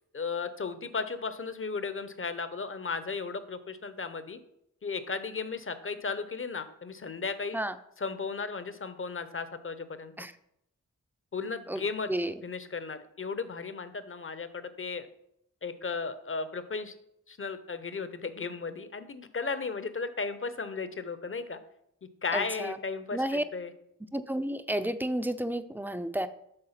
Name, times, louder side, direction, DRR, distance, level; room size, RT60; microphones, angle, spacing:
voice 1, 0.1-4.4 4.8-7.6 8.0-10.3 11.3-12.1 12.4-15.1 15.6-16.9 17.3-21.6 22.2-23.7, left 4 dB, 40° left, 11 dB, 0.7 m, -35 dB
voice 2, 22.3-22.8 23.1-23.4 24.1-26.3, right 1 dB, 5° right, 11 dB, 0.5 m, -31 dB
6.7 x 3.8 x 5.7 m, 0.77 s
cardioid pair, 40°, 32 cm